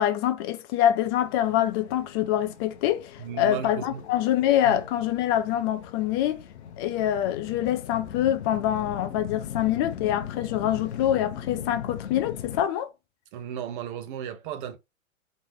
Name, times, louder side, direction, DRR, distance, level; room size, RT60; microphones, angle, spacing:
voice 1, 0.0-3.1 3.4-6.4 6.8-12.9, left 11 dB, 20° left, 0.4 m, -25 dB
sound 1, 1.0-12.6, left 8 dB, 55° left, 0.9 m, -40 dB
voice 2, 3.2-4.1 4.6-4.9 13.3-14.8, right 8 dB, 40° right, 1.0 m, -35 dB
4.2 x 3.2 x 3.1 m
figure-of-eight pair, 105°, 40 cm